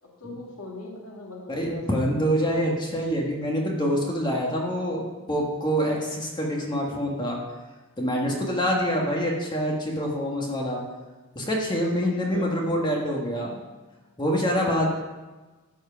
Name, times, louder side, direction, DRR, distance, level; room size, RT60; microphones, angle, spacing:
voice 1, 0.0-1.8 12.2-12.6, left 2 dB, 70° left, -2 dB, 1.8 m, -40 dB
voice 2, 1.5-7.4 8.0-10.8 11.3-13.6 14.2-14.9, equal, 20° left, -1 dB, 1.5 m, -26 dB
14.0 x 4.8 x 5.7 m, 1.2 s
head